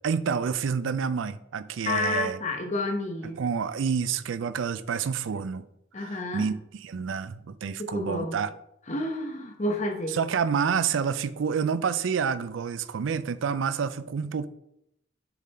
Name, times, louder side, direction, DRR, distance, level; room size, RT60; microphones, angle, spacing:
voice 1, 0.0-2.4 3.4-5.6 6.0-8.5 10.1-14.5, right 6 dB, 85° right, 0.4 m, -28 dB
voice 2, 1.9-3.4 5.9-6.5 7.8-8.4 8.9-10.2, left 2 dB, 35° left, 0.9 m, -30 dB
7.1 x 3.8 x 4.3 m
head